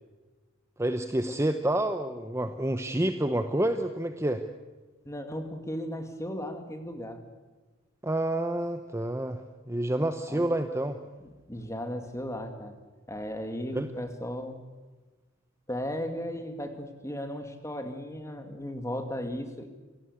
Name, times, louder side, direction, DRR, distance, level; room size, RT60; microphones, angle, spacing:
voice 1, 0.8-4.4 8.0-9.4 9.7-11.0 13.7-13.9, right 1 dB, 15° right, 8 dB, 0.8 m, -28 dB
voice 2, 5.1-7.2 10.3-10.5 11.2-12.8 13.1-14.6 15.7-19.7, equal, 15° left, 7 dB, 2.2 m, -36 dB
27.0 x 17.5 x 8.5 m, 1.3 s
head